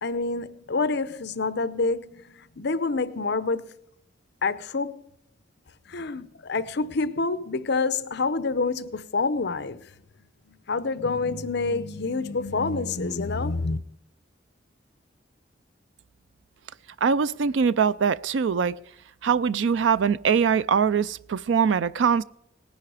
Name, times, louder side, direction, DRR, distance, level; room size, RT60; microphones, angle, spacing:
voice 1, 0.0-3.7 4.4-5.0 5.9-9.9 10.5-13.8, left 3 dB, 65° left, 0.8 m, -27 dB
voice 2, 17.0-18.8 19.2-22.2, right 6 dB, 75° right, 0.4 m, -22 dB
19.0 x 10.5 x 4.9 m
head